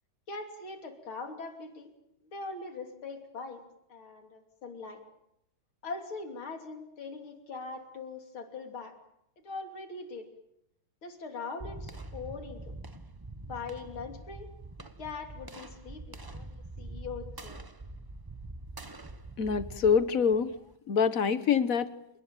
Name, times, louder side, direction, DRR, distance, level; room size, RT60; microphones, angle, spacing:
voice 1, 0.3-1.9 2.2-3.6 3.9-5.0 5.8-9.0 9.4-10.3 11.0-12.7 13.5-14.5 15.0-17.6, left 4 dB, 90° left, 5 dB, 3.8 m, -41 dB
sound 1, 11.6-20.7, right 2 dB, 20° right, 0.5 m, -45 dB
voice 2, 19.4-20.6 20.9-21.9, left 6 dB, 45° left, 13 dB, 1.4 m, -25 dB
29.0 x 18.5 x 9.1 m, 0.83 s
omnidirectional pair, 2.2 m